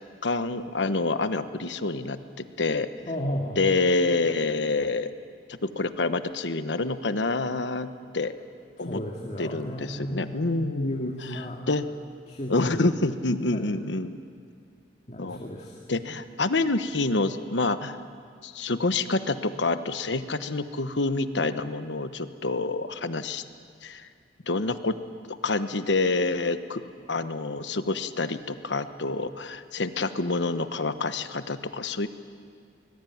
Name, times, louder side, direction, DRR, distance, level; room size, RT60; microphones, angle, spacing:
voice 1, 0.2-2.2 2.6-2.9 3.6-5.1 5.6-8.3 8.8-9.0 9.4-11.9 12.5-14.2 15.2-15.4 15.9-18.0 18.4-23.4 23.8-24.1 24.5-25.0 25.4-26.8 27.1-32.1, left 3 dB, 85° left, 11 dB, 1.2 m, -27 dB
voice 2, 3.1-3.7 8.8-11.6 12.3-12.8 13.5-13.7 15.1-15.8, equal, 40° left, -1 dB, 2.4 m, -34 dB
24.0 x 21.0 x 9.4 m, 2.3 s
head